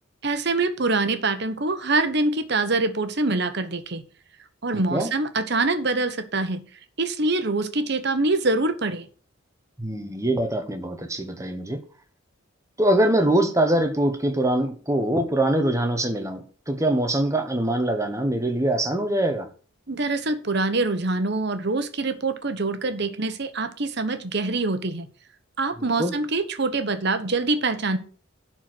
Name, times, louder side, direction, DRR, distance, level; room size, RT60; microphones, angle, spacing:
voice 1, 0.2-4.0 4.6-6.6 7.0-9.1 19.9-25.1 25.6-28.0, right 3 dB, 55° right, 1.2 m, -25 dB
voice 2, 4.7-5.1 9.8-11.8 12.8-19.5 25.8-26.1, right 1 dB, 15° right, 1.2 m, -23 dB
11.0 x 4.6 x 7.9 m
head